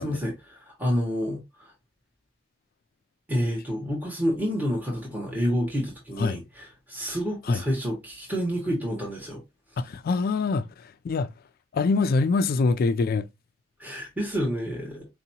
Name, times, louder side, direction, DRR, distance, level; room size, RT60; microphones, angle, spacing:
voice 1, 0.0-1.4 3.3-9.4 13.8-15.1, equal, 10° right, 1.2 m, -29 dB
voice 2, 9.8-11.3 11.7-13.3, left 4 dB, 50° left, 0.3 m, -24 dB
4.5 x 2.8 x 2.7 m
head